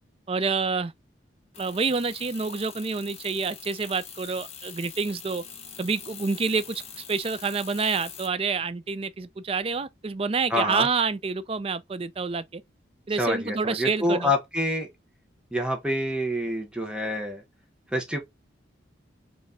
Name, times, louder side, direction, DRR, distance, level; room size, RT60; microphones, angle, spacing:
voice 1, 0.3-0.9 1.6-5.4 5.8-12.6 13.1-14.3, right 4 dB, 30° right, 0.4 m, -28 dB
sound 1, 1.5-8.3, left 7 dB, 30° left, 0.8 m, -43 dB
voice 2, 10.5-10.9 13.2-14.9 15.5-17.4 17.9-18.2, left 1 dB, 5° right, 1.0 m, -27 dB
4.1 x 2.6 x 3.6 m
head